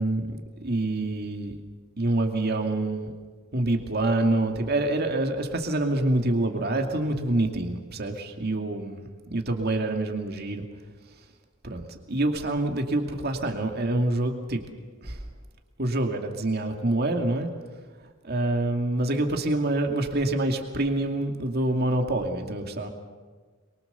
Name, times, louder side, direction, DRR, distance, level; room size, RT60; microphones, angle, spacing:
voice 1, 0.0-1.6 2.0-3.1 3.5-10.7 11.6-14.6 15.0-15.2 15.8-17.5 18.2-22.9, right 2 dB, 50° right, 4 dB, 2.4 m, -26 dB
23.5 x 23.5 x 7.0 m, 1.5 s
head